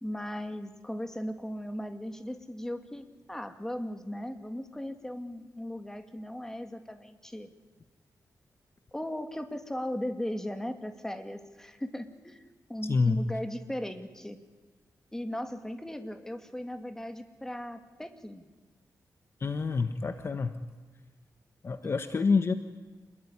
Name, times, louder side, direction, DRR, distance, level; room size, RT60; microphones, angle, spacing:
voice 1, 0.0-7.5 8.9-12.4 12.7-14.4 15.1-18.5 21.8-21.9, equal, 5° left, 7 dB, 2.4 m, -37 dB
voice 2, 19.4-20.5 21.6-22.5, left 4 dB, 40° left, 9 dB, 1.4 m, -27 dB
27.5 x 21.5 x 9.9 m, 1.3 s
wide cardioid pair, 125°, 6 cm